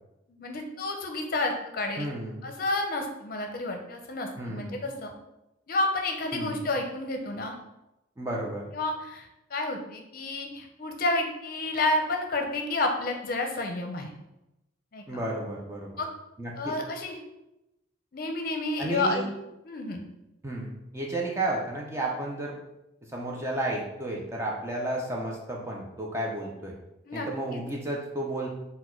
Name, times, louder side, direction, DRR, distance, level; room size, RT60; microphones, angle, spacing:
voice 1, 0.4-2.1 2.4-5.1 5.7-7.5 8.7-14.1 14.9-15.2 16.0-16.1 16.5-17.2 18.1-19.2 19.7-20.0 27.1-27.6, left 2 dB, 50° left, 3 dB, 0.6 m, -30 dB
voice 2, 2.0-2.4 4.4-4.8 6.3-6.6 8.2-8.7 15.1-16.0 16.4-16.8 18.8-19.3 20.4-22.6 23.0-26.7 27.1-28.5, right 1 dB, 15° right, -2 dB, 0.5 m, -32 dB
4.3 x 2.2 x 4.3 m, 0.91 s
head